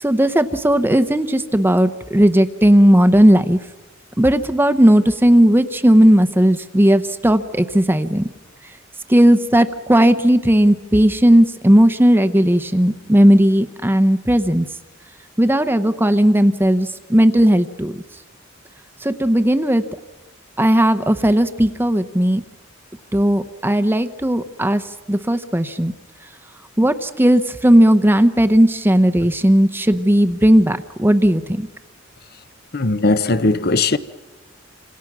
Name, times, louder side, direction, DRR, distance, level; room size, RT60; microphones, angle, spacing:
voice 1, 0.0-3.6 4.2-8.2 9.1-14.7 15.4-17.9 19.0-19.8 20.6-22.4 23.1-24.8 25.1-25.9 26.8-31.7, equal, 10° right, 0.8 m, -15 dB
voice 2, 32.7-34.0, left 3 dB, 50° left, 0.9 m, -18 dB
28.5 x 26.5 x 6.1 m
head